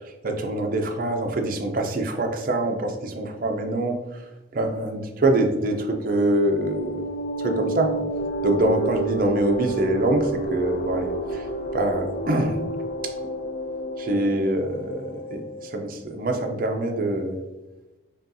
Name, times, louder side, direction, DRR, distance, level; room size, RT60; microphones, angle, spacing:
voice 1, 0.2-4.0 4.5-7.0 7.4-8.0 8.4-11.4 11.7-12.6 14.0-17.4, right 1 dB, 50° right, 3 dB, 0.5 m, -24 dB
sound 1, 5.7-15.9, right 2 dB, 50° left, 0.3 m, -31 dB
5.2 x 2.3 x 2.6 m, 1.1 s
head